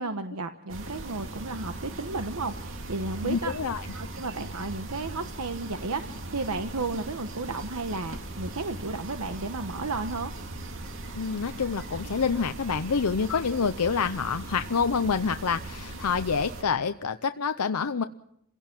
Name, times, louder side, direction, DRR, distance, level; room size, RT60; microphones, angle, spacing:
voice 1, 0.0-3.5 3.9-10.3, right 3 dB, 80° right, 7 dB, 1.1 m, -33 dB
sound 1, 0.7-16.6, right 2 dB, 60° right, 2.4 m, -39 dB
voice 2, 3.2-3.9 11.1-18.0, left 5 dB, 90° left, 10 dB, 0.7 m, -27 dB
28.5 x 17.0 x 6.1 m, 0.74 s
head